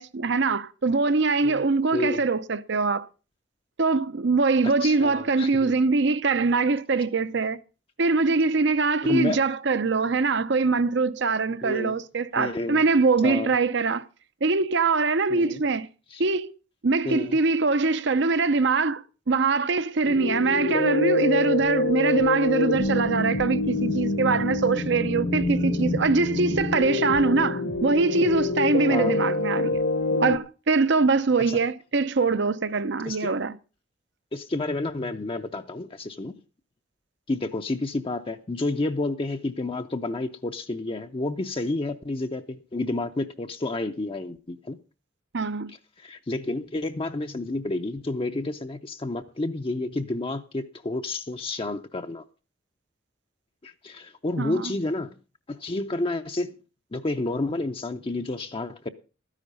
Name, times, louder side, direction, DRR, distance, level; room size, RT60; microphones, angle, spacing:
voice 1, 0.0-3.1 3.8-7.6 8.0-14.1 14.4-15.9 16.2-16.5 16.8-29.8 30.2-33.6 45.3-45.7 54.4-54.7, right 4 dB, 65° right, 0.7 m, -23 dB
voice 2, 1.9-2.2 4.6-5.7 9.0-9.4 11.6-12.0 12.4-12.8 13.2-13.5 15.3-15.6 16.1-16.2 17.0-17.4 28.9-29.2 31.5-31.6 33.0-33.3 34.3-36.4 37.3-44.8 45.7-52.2 53.6-55.2 55.5-56.6 56.9-58.9, left 2 dB, 30° left, 0.6 m, -30 dB
sound 1, 20.0-30.4, left 2 dB, 65° left, 1.2 m, -26 dB
13.0 x 10.0 x 5.3 m
head